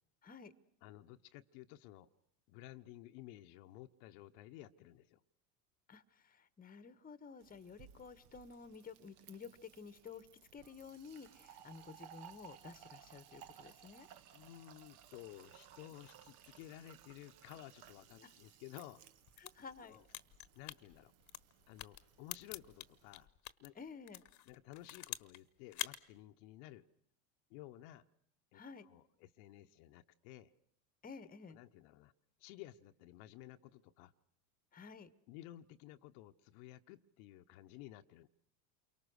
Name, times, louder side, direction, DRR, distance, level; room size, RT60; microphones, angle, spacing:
voice 1, 0.2-0.5 5.9-10.3 10.5-14.1 18.2-18.3 19.4-20.0 23.7-24.2 28.5-28.9 31.0-31.6 34.7-35.1, left 5 dB, 20° left, 15 dB, 1.2 m, -52 dB
voice 2, 0.8-2.1 2.5-5.2 14.3-19.1 19.8-20.0 20.5-21.1 21.7-23.3 23.6-23.7 24.5-26.8 27.5-28.0 28.5-30.5 31.5-32.1 32.4-34.1 35.3-38.3, left 14 dB, 60° left, 7 dB, 1.0 m, -54 dB
Fill (with liquid), 7.4-23.3, right 10 dB, 55° right, 1.5 m, -60 dB
sound 1, 19.2-23.7 24.1-25.4 25.7-26.0, left 13 dB, 40° left, 1.2 m, -46 dB
29.0 x 23.5 x 6.4 m, 0.69 s
hypercardioid pair, 95°, 46 cm